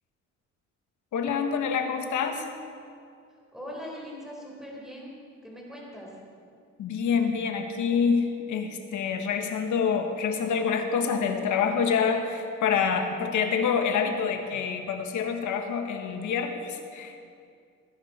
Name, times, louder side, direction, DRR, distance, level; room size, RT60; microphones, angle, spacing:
voice 1, 1.1-2.5 6.8-17.2, left 6 dB, 75° left, 5 dB, 1.6 m, -27 dB
voice 2, 3.5-5.1 5.4-6.2, equal, ahead, -3 dB, 4.5 m, -41 dB
19.0 x 11.0 x 4.4 m, 2.3 s
cardioid pair, 90°, 30 cm